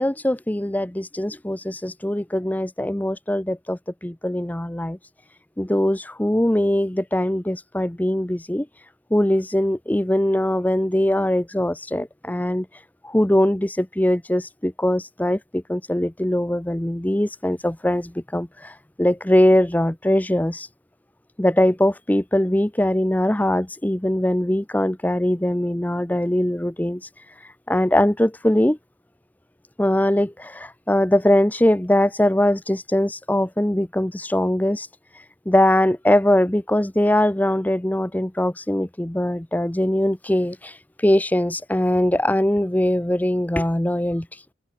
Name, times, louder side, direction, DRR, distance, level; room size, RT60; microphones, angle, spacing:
voice 1, 0.0-5.0 5.6-8.7 9.1-12.7 13.0-20.7 21.4-27.0 27.7-28.8 29.8-34.9 35.5-44.3, left 1 dB, 10° left, 0.6 m, -21 dB
head